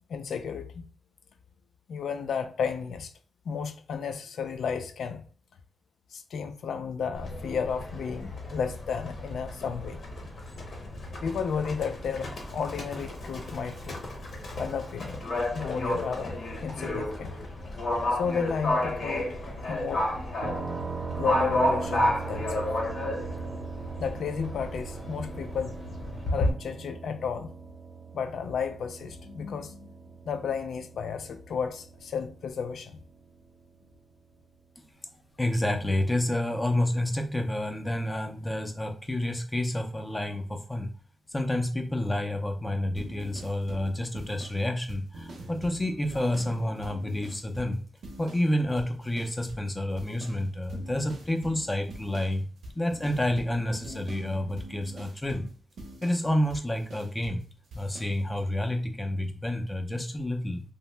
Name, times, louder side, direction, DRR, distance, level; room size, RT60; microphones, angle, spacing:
voice 1, 0.1-0.9 1.9-3.1 3.5-5.2 6.1-10.0 11.2-14.0 14.6-15.2 15.5-17.3 18.1-19.3 19.7-20.1 21.2-22.7 24.0-25.7 26.3-27.5 28.1-29.9 30.3-33.0, left 6 dB, 75° left, 0.4 m, -32 dB
Livestock farm animals working animals, 7.1-26.5, left 1 dB, 50° left, 0.7 m, -32 dB
sound 1, 20.4-34.1, right 5 dB, 50° right, 0.4 m, -40 dB
voice 2, 35.4-40.9 41.3-47.8 48.2-52.4 52.8-55.4 56.0-57.4 57.7-60.6, left 1 dB, 15° left, 0.4 m, -29 dB
sound 2, 43.0-48.5 48.8-49.7 50.0-57.4 57.7-58.2, right 1 dB, 85° right, 0.6 m, -44 dB
2.8 x 2.0 x 3.2 m
wide cardioid pair, 170°, 0 cm